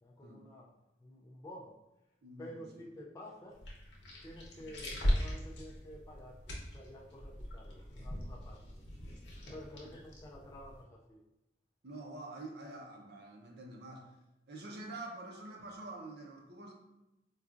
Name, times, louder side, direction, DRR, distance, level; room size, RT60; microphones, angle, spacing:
voice 1, 0.0-0.7 1.0-1.8 2.4-3.7 4.2-8.9 9.5-11.2, equal, 15° left, -3 dB, 0.3 m, -51 dB
voice 2, 2.2-2.8 4.6-4.7 9.8-9.9 11.8-14.2 14.5-16.7, right 2 dB, 65° right, 1 dB, 0.6 m, -47 dB
sound 1, 3.5-10.8, equal, 80° left, 0.9 m, -39 dB
4.5 x 2.4 x 2.4 m, 0.94 s
head